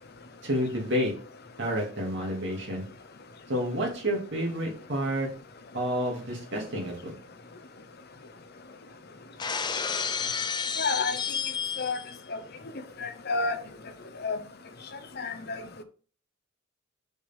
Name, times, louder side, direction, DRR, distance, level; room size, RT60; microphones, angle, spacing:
voice 1, 0.4-1.1 1.6-2.8 3.5-5.3 5.7-7.1, equal, 55° right, 2.4 m, -29 dB
Shatter, 9.4-12.2, left 6 dB, 20° left, 0.4 m, -31 dB
voice 2, 10.8-11.2 11.8-12.0 13.0-13.6 14.2-14.4 15.2-15.6, left 4 dB, 50° left, 0.8 m, -29 dB
6.6 x 4.9 x 3.5 m
head